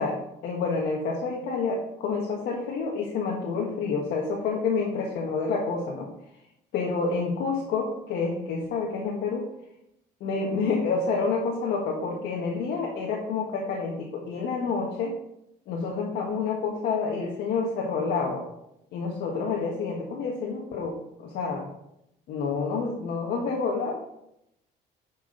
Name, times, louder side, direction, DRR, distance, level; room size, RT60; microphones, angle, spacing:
voice 1, 0.0-6.1 6.7-9.5 10.2-15.2 15.7-18.4 18.9-21.7 22.3-23.9, left 4 dB, 75° left, -1 dB, 1.5 m, -28 dB
10.0 x 6.0 x 3.9 m, 0.81 s
cardioid pair, 110°, 17 cm